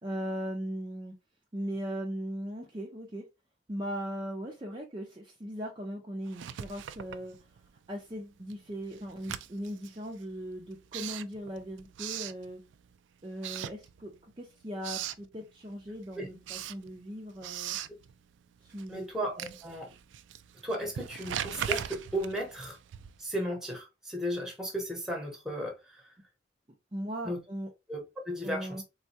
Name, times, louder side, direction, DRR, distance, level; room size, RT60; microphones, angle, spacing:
voice 1, 0.0-1.1 1.5-3.2 3.7-7.4 7.9-12.6 13.2-17.8 18.6-19.0 19.4-19.5 26.9-27.7 28.4-28.8, equal, 25° right, 0.5 m, -38 dB
Writing, 6.3-7.9 8.2-13.0 13.3-14.3 14.6-15.3 15.7-23.4, right 10 dB, 80° right, 0.3 m, -40 dB
voice 2, 18.9-19.9 20.6-22.8 23.2-26.0 27.2-27.4 27.9-28.8, equal, 5° right, 1.0 m, -35 dB
3.8 x 2.2 x 2.7 m
head